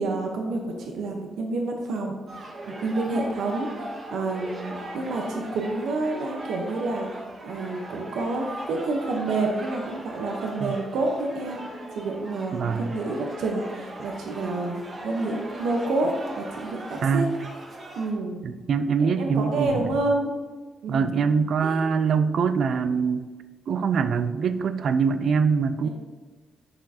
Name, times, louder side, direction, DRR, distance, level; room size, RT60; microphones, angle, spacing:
voice 1, 0.0-17.3 18.0-18.5 19.0-20.3 20.8-21.2 21.6-21.8 25.8-25.9, right 2 dB, 85° right, 2 dB, 0.9 m, -29 dB
sound 1, 2.3-18.1, right 1 dB, 35° right, 1.0 m, -39 dB
voice 2, 12.5-13.0 17.0-17.3 18.4-19.9 20.9-23.3 23.7-25.9, right 5 dB, 55° right, 11 dB, 0.4 m, -24 dB
sound 2, 15.0-15.2 19.6-20.1, left 2 dB, ahead, 0.7 m, -40 dB
8.8 x 6.3 x 2.8 m, 1.3 s
cardioid pair, 155°, 0 cm